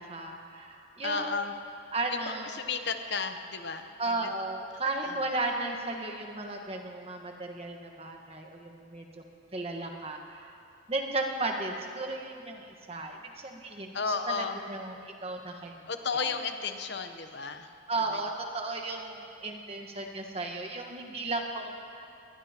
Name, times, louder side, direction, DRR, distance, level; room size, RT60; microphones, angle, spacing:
voice 1, 0.0-1.4 1.9-2.6 4.0-9.2 9.5-10.5 10.9-15.8 16.1-16.3 17.9-22.1, right 2 dB, 30° right, 2 dB, 1.4 m, -35 dB
voice 2, 1.0-1.5 2.1-2.2 2.5-4.3 5.0-5.2 13.9-14.6 15.9-17.7 18.1-18.2, left 5 dB, 60° left, 7 dB, 0.9 m, -33 dB
22.0 x 19.5 x 3.0 m, 2.5 s
head